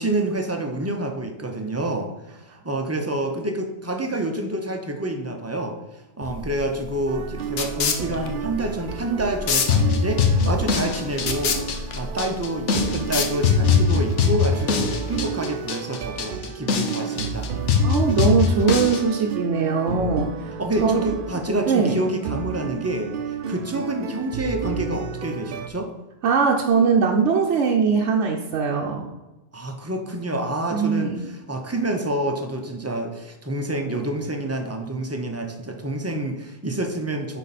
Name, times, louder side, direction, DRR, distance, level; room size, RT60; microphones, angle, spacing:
voice 1, 0.0-2.1 2.4-5.8 6.2-11.6 11.9-17.5 20.6-23.1 23.5-25.9 29.5-37.4, right 1 dB, 15° right, 3 dB, 0.6 m, -28 dB
sound 1, 6.2-13.9, left 5 dB, 65° left, 1.0 m, -29 dB
sound 2, 7.1-25.7, right 6 dB, 55° right, 0.7 m, -32 dB
sound 3, 9.7-19.0, left 6 dB, 85° left, 1.1 m, -22 dB
voice 2, 17.8-20.3 20.8-21.0 21.7-22.0 26.2-29.1 30.7-31.2, right 5 dB, 90° right, 0 dB, 1.0 m, -21 dB
10.0 x 4.2 x 4.1 m, 1.0 s
omnidirectional pair, 1.2 m